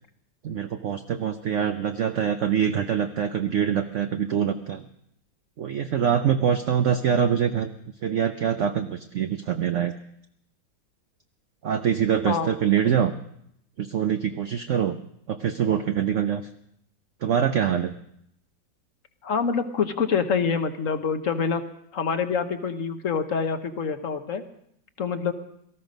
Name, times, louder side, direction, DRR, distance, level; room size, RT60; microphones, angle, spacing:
voice 1, 0.4-4.9 5.6-7.7 8.0-9.9 11.6-13.1 13.8-15.0 15.3-16.4 17.2-17.9, right 8 dB, 60° right, 7 dB, 0.9 m, -24 dB
voice 2, 19.2-21.6 21.9-24.4 25.0-25.3, left 6 dB, 50° left, 8 dB, 1.3 m, -26 dB
18.0 x 14.0 x 5.3 m, 0.73 s
omnidirectional pair, 1.8 m